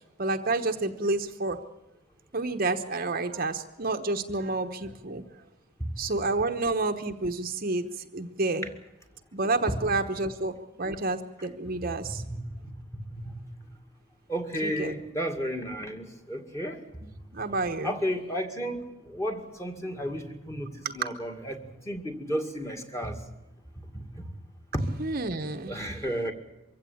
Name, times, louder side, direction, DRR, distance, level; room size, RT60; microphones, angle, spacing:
voice 1, 0.2-1.6 2.3-5.2 6.0-8.7 9.3-12.2 14.6-14.9 17.3-18.0 20.8-21.1 25.0-25.9, right 3 dB, 40° right, 6 dB, 1.0 m, -29 dB
voice 2, 12.2-13.4 13.7-13.8 14.3-16.8 17.8-23.2 23.9-24.3 24.7-24.8 25.7-26.3, equal, 15° left, 5 dB, 2.2 m, -33 dB
23.5 x 16.0 x 8.6 m, 1.0 s
head